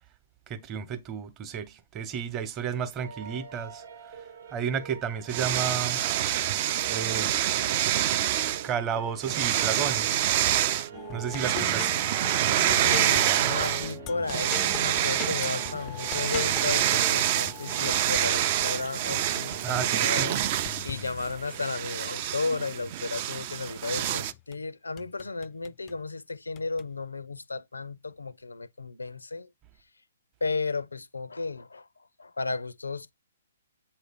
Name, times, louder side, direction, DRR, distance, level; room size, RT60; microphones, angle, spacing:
voice 1, 0.5-4.1 4.5-6.0 6.9-7.4 8.6-10.2 11.1-12.0 19.6-20.3, right 7 dB, 25° right, 0.9 m, -32 dB
sound 1, 3.0-21.1, right 7 dB, 60° right, 0.9 m, -44 dB
sound 2, 5.3-8.7 9.2-10.9 11.3-13.9 14.3-24.3, right 12 dB, 40° right, 0.4 m, -27 dB
sound 3, 10.9-21.6 23.4-24.6 25.0-26.0 26.6-26.9, left 13 dB, 25° left, 0.3 m, -41 dB
voice 2, 12.5-29.5 30.4-33.1, left 3 dB, 90° left, 0.5 m, -34 dB
7.9 x 2.7 x 5.2 m
hypercardioid pair, 130°, 0 cm